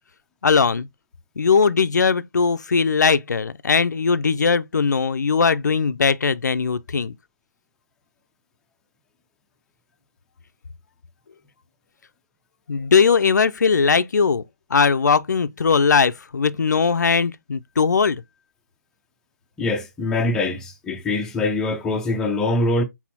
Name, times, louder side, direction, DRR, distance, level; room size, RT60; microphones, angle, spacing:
voice 1, 0.4-0.9 1.4-7.1 12.7-14.4 14.7-18.2, left 5 dB, 75° left, 0.4 m, -19 dB
voice 2, 19.6-22.8, left 2 dB, 5° left, 0.4 m, -23 dB
4.1 x 4.1 x 2.8 m
figure-of-eight pair, 145°, 10 cm